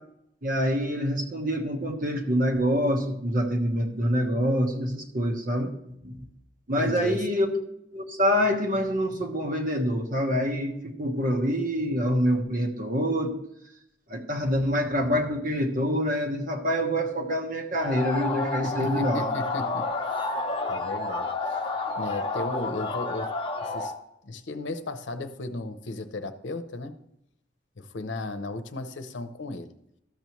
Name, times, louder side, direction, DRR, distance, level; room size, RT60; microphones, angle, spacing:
voice 1, 0.4-5.7 6.0-6.2 6.7-7.5 7.9-13.3 14.1-19.3, equal, 50° right, 4 dB, 1.2 m, -26 dB
voice 2, 6.7-7.2 18.6-19.9 20.7-21.6 22.0-23.3 23.6-23.9 24.2-27.0 27.8-29.7, left 2 dB, 85° left, 9 dB, 0.7 m, -35 dB
sound 1, 17.8-24.0, left 3 dB, 30° left, 0.9 m, -30 dB
13.0 x 6.9 x 3.1 m, 0.78 s
head